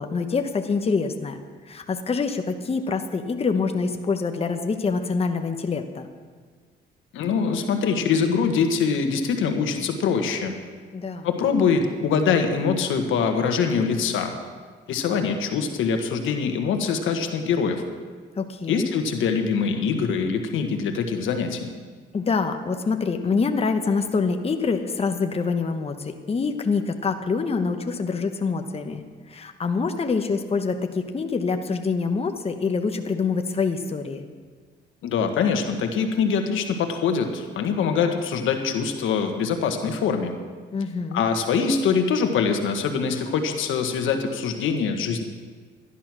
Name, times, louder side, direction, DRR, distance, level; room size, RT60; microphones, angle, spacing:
voice 1, 0.0-1.4 1.7-6.1 10.9-11.3 18.4-18.9 22.1-29.0 29.3-34.2 40.7-41.2, left 4 dB, 30° left, 6 dB, 1.0 m, -25 dB
voice 2, 7.1-10.5 11.2-14.3 14.9-17.8 18.7-21.7 35.0-40.3 41.1-45.2, left 6 dB, 80° left, 5 dB, 1.5 m, -23 dB
13.5 x 11.5 x 6.1 m, 1.5 s
cardioid pair, 90°, 20 cm